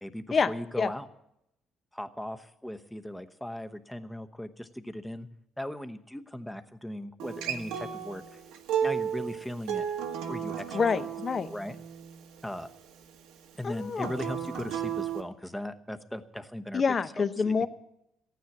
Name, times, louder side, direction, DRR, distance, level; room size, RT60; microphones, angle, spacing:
voice 1, 0.0-1.1 1.9-5.3 5.6-8.4 8.8-9.8 10.2-10.9 11.5-11.8 12.4-12.7 13.6-16.8 17.2-17.7, left 1 dB, 5° left, 8 dB, 1.0 m, -38 dB
Acoustic guitar, 7.2-12.4 14.0-15.2, right 8 dB, 85° right, 1.5 m, -33 dB
voice 2, 10.7-11.5 13.6-14.1 16.7-17.7, left 5 dB, 40° left, 13 dB, 0.8 m, -27 dB
14.5 x 9.4 x 7.2 m, 0.81 s
supercardioid pair, 85°, 0 cm